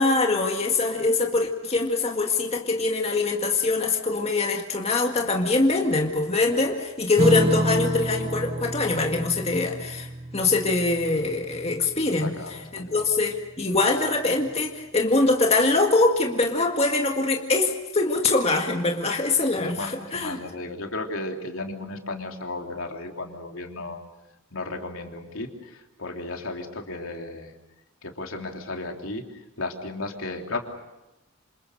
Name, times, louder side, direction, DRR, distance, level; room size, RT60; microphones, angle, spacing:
voice 1, 0.0-10.1 10.3-12.4 12.7-20.4, left 3 dB, 30° left, 2 dB, 2.0 m, -23 dB
Strum, 7.2-14.0, right 1 dB, 25° right, 0.9 m, -30 dB
voice 2, 12.1-13.1 19.6-24.0 24.5-27.5 28.0-30.6, left 2 dB, 75° left, 2 dB, 3.3 m, -34 dB
28.0 x 27.5 x 6.6 m, 1.0 s
head